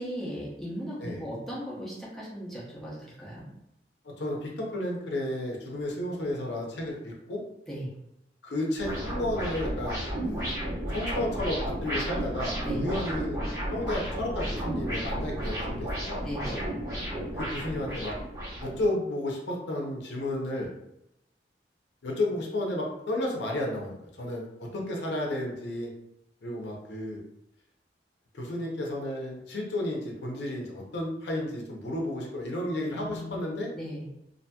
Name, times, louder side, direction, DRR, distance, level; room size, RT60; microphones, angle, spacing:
voice 1, 0.0-3.5 7.7-7.9 12.6-13.0 16.2-16.7 32.9-33.4 33.7-34.1, equal, ahead, -8 dB, 0.8 m, -37 dB
voice 2, 4.2-7.4 8.4-10.5 10.9-13.4 13.7-16.3 17.4-18.1 18.6-20.7 22.0-25.9 26.4-27.2 28.3-33.7, left 1 dB, 75° left, -1 dB, 0.6 m, -32 dB
sound 1, 8.8-18.9, equal, 20° right, 1.0 m, -32 dB
2.8 x 2.6 x 2.2 m, 0.83 s
head